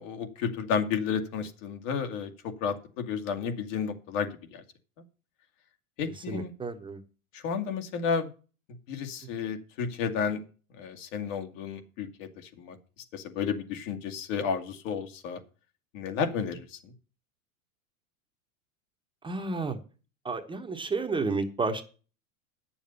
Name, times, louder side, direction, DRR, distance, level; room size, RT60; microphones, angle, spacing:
voice 1, 0.0-2.3 2.6-4.6 6.0-6.5 7.3-8.3 8.9-10.4 10.8-12.8 13.1-15.4 15.9-16.9, left 6 dB, 60° left, 6 dB, 2.2 m, -32 dB
voice 2, 6.3-7.0 19.2-19.8 20.2-21.8, right 3 dB, 10° right, 4 dB, 1.1 m, -31 dB
9.7 x 7.1 x 6.9 m, 0.36 s
supercardioid pair, 135°, 42 cm